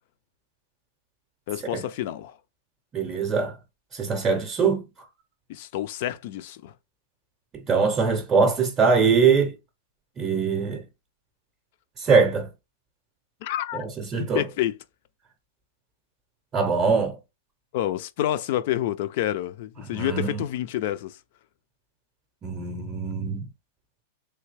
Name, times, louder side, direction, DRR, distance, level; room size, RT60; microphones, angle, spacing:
voice 1, 1.5-2.4 5.5-6.7 13.4-13.9 14.2-14.8 17.7-21.2, left 12 dB, 50° left, 0.4 m, -28 dB
voice 2, 2.9-3.6 3.9-4.8 7.7-9.5 10.2-10.8 12.0-12.5 13.7-14.4 16.5-17.2 19.9-20.4 22.4-23.5, right 5 dB, 20° right, 0.6 m, -22 dB
3.3 x 2.7 x 3.2 m
supercardioid pair, 155°, 0 cm